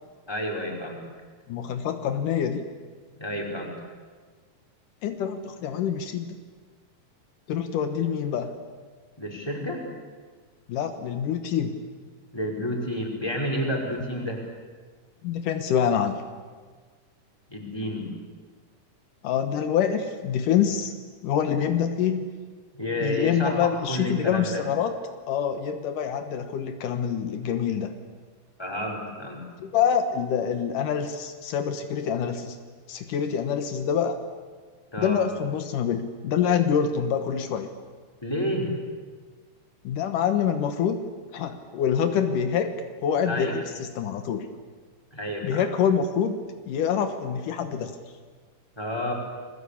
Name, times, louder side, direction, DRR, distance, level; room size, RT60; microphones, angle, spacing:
voice 1, 0.3-1.0 3.2-3.7 9.2-9.8 12.3-14.4 17.5-18.1 22.8-23.6 23.9-24.6 28.6-29.4 34.9-35.2 38.2-38.7 43.3-43.5 45.1-45.7 48.8-49.1, equal, 5° left, -1 dB, 5.2 m, -30 dB
voice 2, 1.5-2.6 5.0-6.4 7.5-8.5 10.7-11.8 15.2-16.2 19.2-20.9 21.2-22.3 23.0-25.0 25.3-27.9 29.6-32.6 32.9-34.2 35.0-37.7 39.8-41.1 41.3-42.7 43.0-44.5 45.4-46.4 46.7-47.9, left 8 dB, 80° left, 8 dB, 2.8 m, -26 dB
30.0 x 21.5 x 8.6 m, 1.5 s
omnidirectional pair, 3.8 m